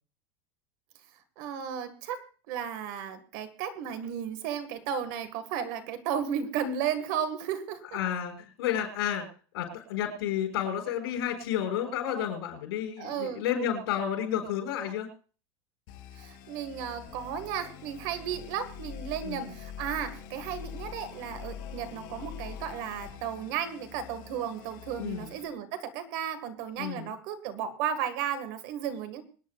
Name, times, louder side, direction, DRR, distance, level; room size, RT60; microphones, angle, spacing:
voice 1, 1.4-2.2 2.5-8.0 13.0-13.4 16.1-29.2, right 8 dB, 55° right, 10 dB, 1.7 m, -34 dB
voice 2, 7.9-9.2 9.5-15.1 19.2-19.5 25.0-25.3 26.8-27.1, left 9 dB, 85° left, 1 dB, 6.1 m, -31 dB
sound 1, 15.9-25.5, left 7 dB, 50° left, 5.2 m, -44 dB
25.0 x 9.9 x 2.4 m, 0.39 s
supercardioid pair, 160°, 13 cm